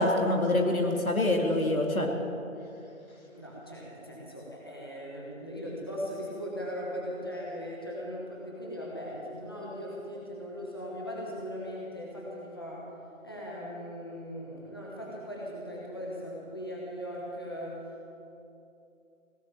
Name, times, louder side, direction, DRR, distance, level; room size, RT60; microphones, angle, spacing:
voice 1, 0.0-2.1, left 1 dB, 85° left, 2 dB, 2.7 m, -25 dB
voice 2, 3.3-12.9 13.2-18.1, equal, 15° left, -5 dB, 1.3 m, -39 dB
17.0 x 11.0 x 7.4 m, 2.8 s
figure-of-eight pair, 175°, 41 cm